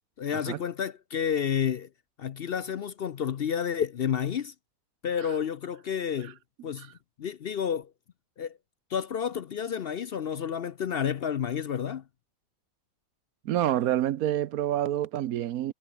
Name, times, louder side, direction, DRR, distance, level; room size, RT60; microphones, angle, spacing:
voice 1, 0.2-1.9 2.2-4.5 5.0-6.4 6.6-6.9 7.2-7.9 8.4-8.6 8.9-12.0, left 8 dB, 55° left, 0.7 m, -30 dB
voice 2, 13.4-15.7, right 12 dB, 85° right, 1.2 m, -27 dB
omnidirectional pair, 1.5 m